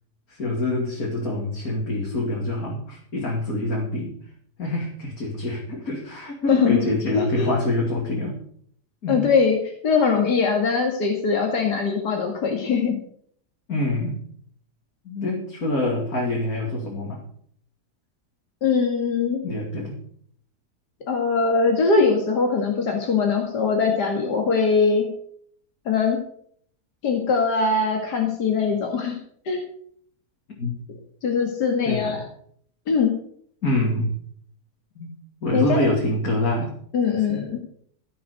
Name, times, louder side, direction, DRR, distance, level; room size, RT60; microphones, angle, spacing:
voice 1, 0.3-4.1 4.6-8.4 9.0-9.3 13.7-14.2 15.0-17.2 19.4-20.0 30.6-30.7 31.8-32.2 33.6-34.1 35.0-35.1 35.4-36.7 37.1-37.4, left 2 dB, 60° left, -2 dB, 3.0 m, -26 dB
voice 2, 6.5-6.9 7.1-7.5 9.1-9.6 9.8-13.0 18.6-19.4 21.1-25.1 25.9-26.2 27.0-29.2 29.5-29.6 31.2-32.2 32.9-33.1 35.5-35.9 36.9-37.6, left 5 dB, 80° left, 2 dB, 2.5 m, -21 dB
15.0 x 7.8 x 6.8 m, 0.62 s
omnidirectional pair, 1.7 m